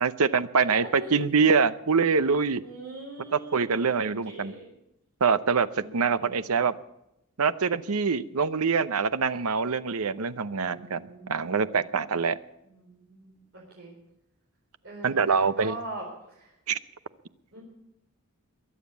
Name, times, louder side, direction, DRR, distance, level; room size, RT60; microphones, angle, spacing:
voice 1, 0.0-2.6 3.3-4.5 5.2-6.7 7.4-12.4 15.0-15.8 16.7-16.8, right 5 dB, 90° right, 15 dB, 0.7 m, -25 dB
voice 2, 0.6-1.2 2.6-4.7 5.8-6.4 10.5-11.9 12.7-14.0 14.8-16.5 17.5-17.6, right 2 dB, 60° right, -4 dB, 4.2 m, -42 dB
22.5 x 7.5 x 8.3 m, 0.83 s
head